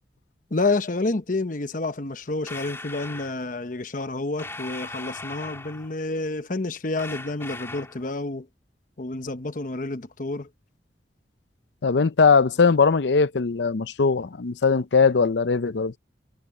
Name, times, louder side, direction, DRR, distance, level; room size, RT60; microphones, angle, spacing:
voice 1, 0.5-8.5 9.0-10.5, left 2 dB, 50° left, 1.0 m, -29 dB
sound 1, 2.5-3.3 4.4-6.0 7.0-8.0, left 2 dB, 15° left, 2.9 m, -38 dB
voice 2, 11.8-16.0, left 5 dB, 85° left, 0.6 m, -20 dB
head